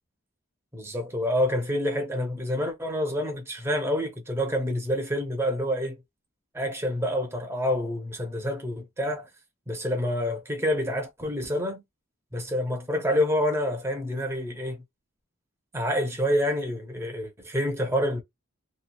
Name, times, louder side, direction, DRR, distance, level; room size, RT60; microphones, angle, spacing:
voice 1, 0.7-6.0 6.5-9.3 9.7-11.8 12.3-14.8 15.7-18.2, equal, 10° right, 0.6 m, -27 dB
2.9 x 2.3 x 2.2 m
head